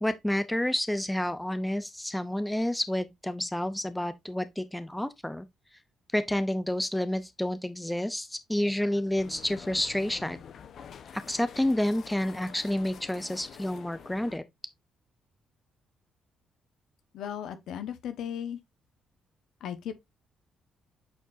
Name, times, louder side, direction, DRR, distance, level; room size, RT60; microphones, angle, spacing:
voice 1, 0.0-5.5 6.1-10.4 11.1-14.4, left 1 dB, 5° left, 0.7 m, -29 dB
sound 1, 9.2-14.4, left 7 dB, 60° left, 0.9 m, -47 dB
voice 2, 17.1-18.6 19.6-20.0, left 9 dB, 80° left, 1.2 m, -36 dB
8.2 x 4.4 x 2.6 m
cardioid pair, 90°, 0 cm